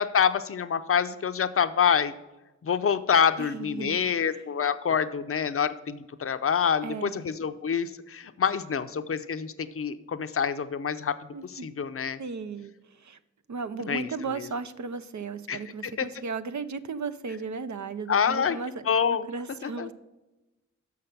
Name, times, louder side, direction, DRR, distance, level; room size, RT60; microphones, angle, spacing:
voice 1, 0.0-2.1 2.6-11.2 11.4-12.2 13.8-14.5 15.5-16.1 18.1-18.6 18.9-19.3 19.6-19.9, left 7 dB, 50° left, 10 dB, 0.6 m, -26 dB
voice 2, 3.4-4.0 6.8-7.3 11.3-11.7 12.2-13.2 13.5-18.7 19.1-19.9, right 4 dB, 70° right, 11 dB, 0.6 m, -35 dB
6.5 x 5.8 x 6.6 m, 1.0 s
cardioid pair, 45°, 30 cm